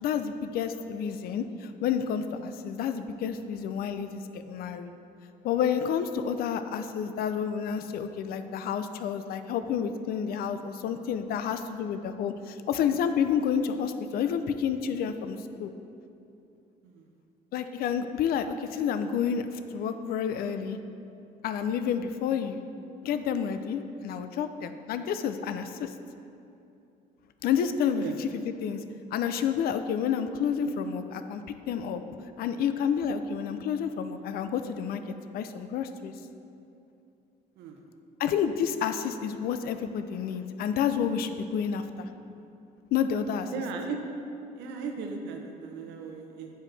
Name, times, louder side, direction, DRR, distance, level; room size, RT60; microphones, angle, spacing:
voice 1, 0.0-4.9 5.4-15.7 17.5-19.5 19.7-20.8 21.4-22.6 23.0-25.9 27.4-28.3 28.6-28.8 29.1-32.0 32.4-35.0 35.3-36.1 38.2-42.1 42.9-43.5, left 7 dB, 65° left, 10 dB, 0.4 m, -29 dB
voice 2, 43.5-44.0 44.5-46.5, right 5 dB, 90° right, 4 dB, 0.7 m, -37 dB
7.8 x 4.7 x 3.2 m, 2.7 s
cardioid pair, 110°, 17 cm